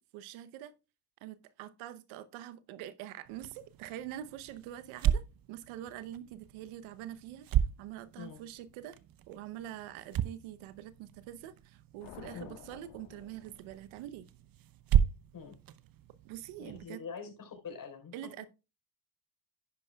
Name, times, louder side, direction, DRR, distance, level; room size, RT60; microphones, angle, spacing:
voice 1, 0.1-0.7 1.2-7.5 7.8-9.0 9.3-14.3 16.2-17.0 18.1-18.5, right 12 dB, 70° right, 0.9 m, -45 dB
sound 1, 3.2-16.8, right 10 dB, 45° right, 0.8 m, -35 dB
sound 2, 12.0-14.2, left 10 dB, 65° left, 1.4 m, -52 dB
voice 2, 16.6-18.1, left 5 dB, 40° left, 4.2 m, -44 dB
10.5 x 9.7 x 2.3 m
supercardioid pair, 70°, 49 cm